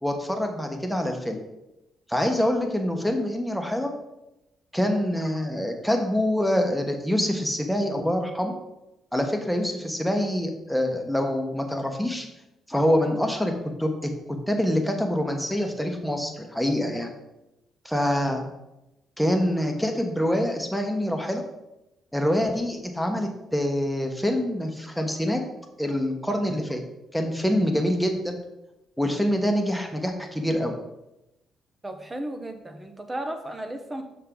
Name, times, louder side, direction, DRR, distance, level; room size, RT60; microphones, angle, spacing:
voice 1, 0.0-1.4 2.1-3.9 4.7-8.5 9.1-12.3 12.7-13.5 13.8-17.1 17.8-18.4 19.2-21.4 22.1-25.4 25.8-26.8 27.1-28.3 29.0-30.7, equal, ahead, 3 dB, 1.2 m, -25 dB
voice 2, 31.8-34.0, right 1 dB, 20° right, 6 dB, 0.9 m, -34 dB
6.5 x 5.5 x 3.9 m, 0.92 s
cardioid pair, 90°, 0 cm